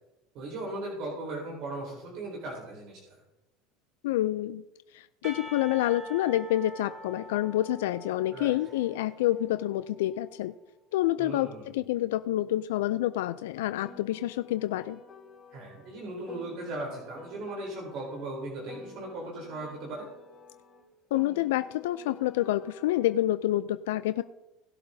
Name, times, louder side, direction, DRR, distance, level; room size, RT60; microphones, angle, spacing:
voice 1, 0.3-3.2 8.3-8.6 11.2-11.8 15.5-20.1, right 2 dB, 60° right, -3 dB, 3.8 m, -38 dB
voice 2, 4.0-4.6 4.9-10.5 10.9-15.0 21.1-24.2, left 14 dB, 85° left, 12 dB, 0.4 m, -28 dB
Percussion / Church bell, 5.2-10.2, equal, 30° right, 1.8 m, -46 dB
Piano, 13.8-18.3 18.7-23.3, left 4 dB, 25° left, 3.5 m, -51 dB
18.5 x 7.8 x 2.7 m, 1.0 s
supercardioid pair, 105°, 0 cm